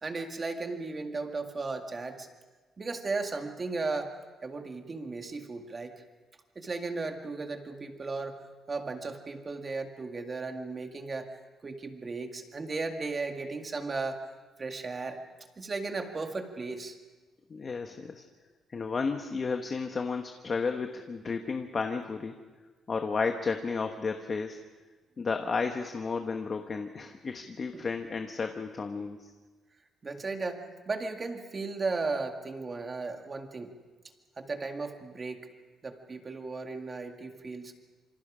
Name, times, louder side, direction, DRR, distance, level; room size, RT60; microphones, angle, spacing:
voice 1, 0.0-2.3 2.8-4.1 4.4-5.9 6.6-8.4 8.7-11.3 11.6-14.2 14.6-15.2 15.6-17.0 27.7-27.9 30.0-33.7 34.4-35.4 35.8-37.7, right 3 dB, 25° right, 4 dB, 2.0 m, -35 dB
voice 2, 17.5-18.2 18.7-22.4 22.9-24.6 25.2-29.3, left 4 dB, 30° left, 5 dB, 1.2 m, -32 dB
27.0 x 25.5 x 5.0 m, 1.3 s
cardioid pair, 150°, 0 cm